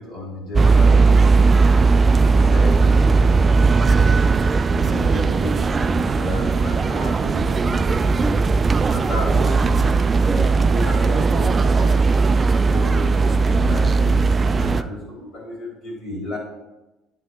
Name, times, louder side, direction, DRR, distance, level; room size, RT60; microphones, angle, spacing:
voice 1, 0.0-4.1 4.7-8.4 8.9-12.0 12.7-16.4, left 2 dB, 55° left, -5 dB, 2.9 m, -33 dB
sound 1, 0.5-14.8, right 4 dB, 35° right, 0.4 m, -17 dB
9.3 x 4.0 x 5.1 m, 1.0 s
supercardioid pair, 70°, 0 cm